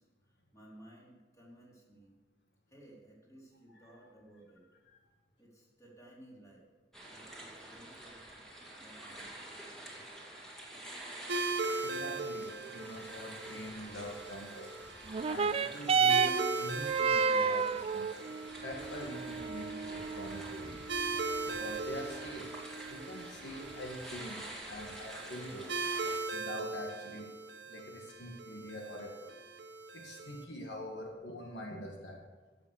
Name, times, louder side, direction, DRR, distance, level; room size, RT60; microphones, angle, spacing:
voice 1, 0.0-2.2 2.7-4.7 5.4-6.7 7.0-8.3 8.7-9.4, right 1 dB, 20° left, -5 dB, 4.1 m, -57 dB
sound 1, 6.9-26.2, right 1 dB, 5° left, 2.4 m, -48 dB
sound 2, 11.3-30.4, right 3 dB, 80° right, 1.2 m, -40 dB
voice 2, 11.8-14.7 15.3-18.3 18.6-20.7 21.5-22.5 22.9-24.4 24.7-25.7 26.3-27.3 27.7-29.3 29.9-32.2, equal, 75° left, 0 dB, 1.8 m, -44 dB
sound 3, 15.1-24.1 24.9-25.0, right 6 dB, 35° right, 0.4 m, -33 dB
15.5 x 7.0 x 6.5 m, 1.3 s
head